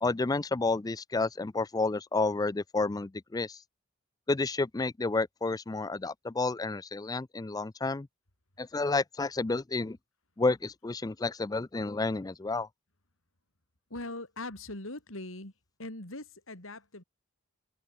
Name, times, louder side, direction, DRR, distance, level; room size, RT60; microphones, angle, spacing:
voice 1, 0.0-3.6 4.3-8.1 8.6-10.0 10.4-12.7, left 3 dB, 20° left, 0.4 m, -30 dB
voice 2, 13.9-15.5 15.8-17.0, left 2 dB, 70° left, 4.7 m, -41 dB
head